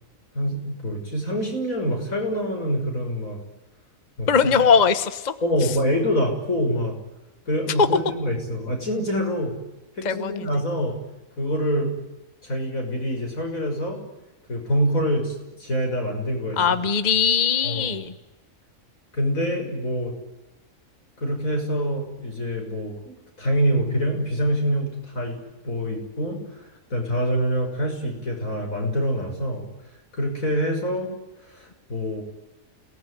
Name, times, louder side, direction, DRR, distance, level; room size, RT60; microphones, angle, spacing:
voice 1, 0.3-3.4 4.2-4.5 5.4-7.0 7.5-9.5 10.0-11.0 11.4-11.9 12.4-14.0 14.5-16.6 17.6-18.0 19.1-20.1 21.2-25.4 25.6-26.6 26.9-29.6 30.1-31.1 31.5-32.2, equal, 85° left, 2 dB, 6.9 m, -25 dB
voice 2, 4.3-5.3 7.8-7.9 10.0-10.3 16.6-18.1, left 6 dB, 35° left, 11 dB, 1.2 m, -20 dB
29.0 x 18.5 x 10.0 m, 1.0 s
omnidirectional pair, 1.4 m